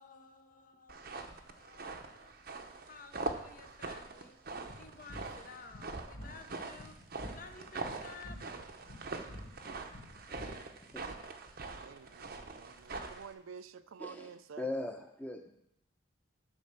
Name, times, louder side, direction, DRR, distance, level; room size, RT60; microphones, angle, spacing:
voice 1, 0.0-2.3 2.7-4.4 4.7-6.9 7.2-8.4, left 4 dB, 40° left, 0.8 m, -54 dB
sound 1, 0.9-13.3, right 3 dB, 45° right, 0.7 m, -43 dB
sound 2, 4.7-10.9, left 1 dB, 60° left, 2.0 m, -50 dB
voice 2, 11.8-14.7, right 6 dB, 80° right, 0.4 m, -50 dB
voice 3, 14.0-14.3 14.6-15.5, left 2 dB, 10° left, 0.8 m, -39 dB
9.6 x 4.4 x 6.8 m
head